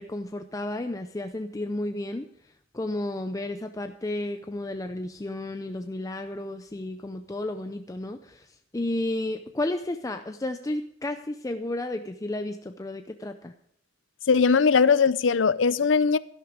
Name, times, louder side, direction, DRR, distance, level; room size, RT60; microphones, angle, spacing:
voice 1, 0.0-13.5, left 1 dB, 20° left, 0.5 m, -32 dB
voice 2, 14.3-16.2, left 5 dB, 85° left, 0.5 m, -20 dB
12.5 x 11.0 x 5.0 m
head